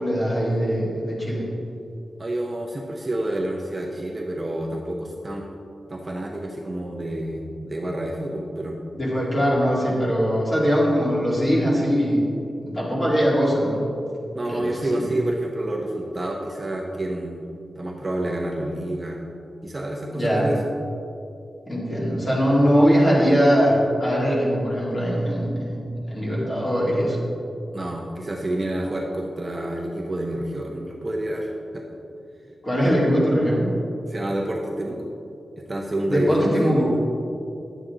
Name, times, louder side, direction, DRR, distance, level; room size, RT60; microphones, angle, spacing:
voice 1, 0.0-1.5 8.9-12.2 12.7-13.8 14.4-15.0 20.2-20.5 21.7-27.2 32.6-33.7 36.1-36.9, equal, 30° left, -6 dB, 2.3 m, -21 dB
voice 2, 2.2-5.5 5.9-8.8 14.3-17.4 17.8-19.2 19.6-20.6 27.7-31.8 34.1-35.1 35.6-36.7, right 1 dB, 25° right, -1 dB, 0.7 m, -28 dB
10.0 x 7.6 x 3.8 m, 2.6 s
wide cardioid pair, 175°, 0 cm